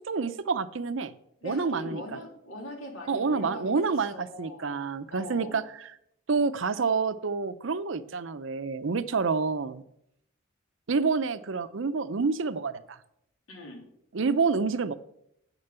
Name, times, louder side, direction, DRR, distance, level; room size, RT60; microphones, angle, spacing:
voice 1, 0.1-1.1 1.4-2.0 3.1-5.9 6.3-9.8 10.9-13.0 14.1-14.9, right 4 dB, 70° right, 13 dB, 0.6 m, -28 dB
voice 2, 1.4-3.8 4.1-4.8 5.1-5.6 13.5-13.8, left 1 dB, 90° left, 0 dB, 3.1 m, -41 dB
9.0 x 6.8 x 6.8 m, 0.74 s
head